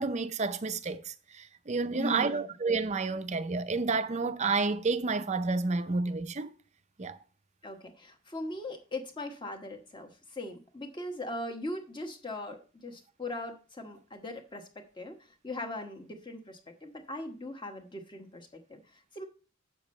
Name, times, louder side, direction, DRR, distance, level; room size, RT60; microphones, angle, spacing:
voice 1, 0.0-6.5 7.0-7.2, right 4 dB, 30° right, 0.5 m, -30 dB
voice 2, 1.9-2.4 7.6-19.2, left 1 dB, 20° left, 1.2 m, -40 dB
8.3 x 7.0 x 4.3 m
head